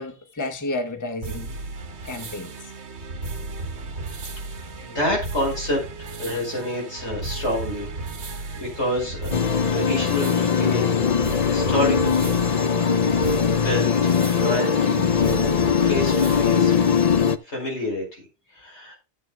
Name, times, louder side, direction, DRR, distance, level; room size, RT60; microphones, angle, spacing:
voice 1, 0.0-1.5 2.0-2.5 8.3-8.6, left 2 dB, 15° left, 1.0 m, -31 dB
sound 1, 1.2-17.2, right 2 dB, 80° right, 1.4 m, -34 dB
voice 2, 4.8-5.9 6.2-7.9 8.5-9.3 9.7-11.0 11.5-12.9 13.5-17.0 17.4-18.2 18.5-19.0, left 1 dB, 85° left, 5.3 m, -28 dB
sound 2, 9.3-17.4, left 6 dB, 45° left, 0.6 m, -21 dB
15.5 x 7.9 x 2.3 m
omnidirectional pair, 1.1 m